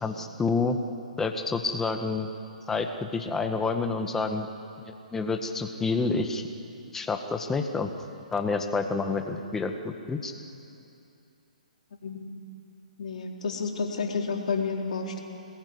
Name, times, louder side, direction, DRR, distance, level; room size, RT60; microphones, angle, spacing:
voice 1, 0.0-0.8 1.2-2.3 2.7-4.5 4.9-6.4 6.9-7.9 8.3-10.3, left 4 dB, 10° left, 6 dB, 1.6 m, -28 dB
voice 2, 13.0-15.2, left 4 dB, 65° left, 1 dB, 4.0 m, -30 dB
26.5 x 20.5 x 9.8 m, 2.7 s
hypercardioid pair, 145°, 4 cm